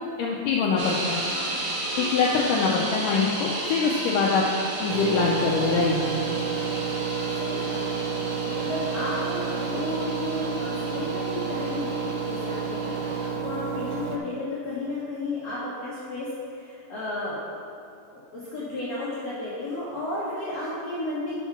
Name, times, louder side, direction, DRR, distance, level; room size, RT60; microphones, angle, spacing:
voice 1, 0.0-1.2 2.0-4.4 4.8-6.0, left 5 dB, 85° left, -3 dB, 1.9 m, -24 dB
sound 1, 0.8-13.3, right 2 dB, 55° right, 2.7 m, -34 dB
voice 2, 1.3-1.7 7.4-8.0 8.5-17.7 18.1-21.3, left 2 dB, 70° left, -8 dB, 1.6 m, -33 dB
Engine, 4.9-14.2, right 6 dB, 80° right, 2.4 m, -30 dB
6.3 x 5.8 x 5.8 m, 2.5 s
omnidirectional pair, 4.5 m